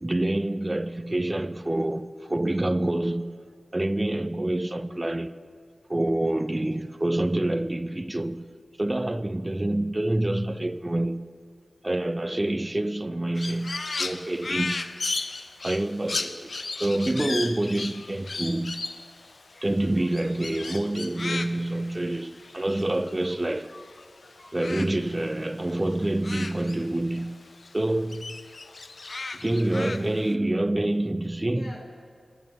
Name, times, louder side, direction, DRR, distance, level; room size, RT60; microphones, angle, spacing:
voice 1, 0.0-3.4 3.7-5.4 5.9-8.5 8.8-11.3 11.8-14.9 15.6-18.9 19.6-23.7 24.5-27.4 27.7-28.4 29.4-31.7, right 1 dB, 20° right, 0.3 m, -27 dB
Crow, 13.3-24.0 24.3-27.3 27.6-30.3, left 3 dB, 55° left, 0.4 m, -36 dB
voice 2, 24.2-24.6 31.5-31.8, left 1 dB, 80° left, 2.4 m, -48 dB
22.0 x 9.0 x 3.3 m
wide cardioid pair, 95°, 0 cm